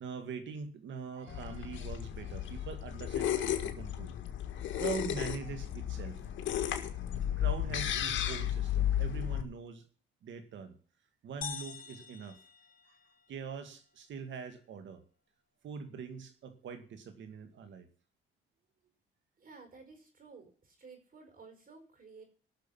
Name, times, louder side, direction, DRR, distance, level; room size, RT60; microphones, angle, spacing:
voice 1, 0.0-4.1 4.8-6.2 7.3-9.8 10.2-10.8 11.2-12.4 13.3-15.0 15.6-17.9, right 5 dB, 70° right, 8 dB, 2.2 m, -43 dB
sound 1, 1.3-9.4, left 11 dB, 70° left, 1.8 m, -34 dB
sound 2, 11.4-13.4, left 7 dB, 45° left, 1.0 m, -45 dB
voice 2, 19.4-22.2, right 4 dB, 45° right, 5 dB, 5.3 m, -54 dB
18.0 x 6.5 x 5.8 m, 0.41 s
cardioid pair, 90°, 20 cm